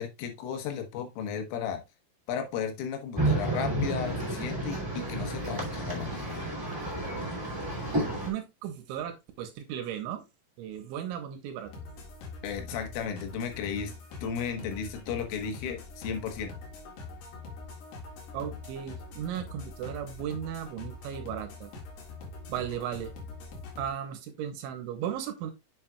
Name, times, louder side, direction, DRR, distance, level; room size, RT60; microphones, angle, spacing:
voice 1, 0.0-1.8 2.3-6.4 12.4-13.9 14.2-16.5, left 7 dB, 80° left, 6 dB, 3.8 m, -34 dB
sound 1, 3.2-8.3, right 1 dB, 10° right, 1.6 m, -31 dB
voice 2, 8.3-10.2 10.6-11.7 18.3-21.7 22.5-23.1 23.8-25.5, right 9 dB, 80° right, 7 dB, 3.1 m, -36 dB
sound 2, 11.7-23.9, left 3 dB, 60° left, 3.6 m, -44 dB
7.4 x 7.3 x 2.3 m, 0.22 s
omnidirectional pair, 5.9 m